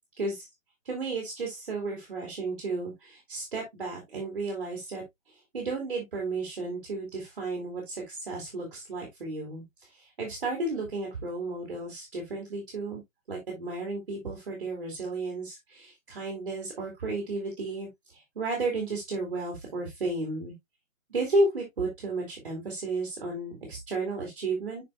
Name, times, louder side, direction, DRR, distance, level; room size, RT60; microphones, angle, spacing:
voice 1, 0.2-0.5 0.8-5.0 5.5-9.6 9.9-13.0 13.3-20.5 21.1-24.8, right 2 dB, 40° right, 2.8 m, -33 dB
7.7 x 6.2 x 2.3 m
hypercardioid pair, 170°, 41 cm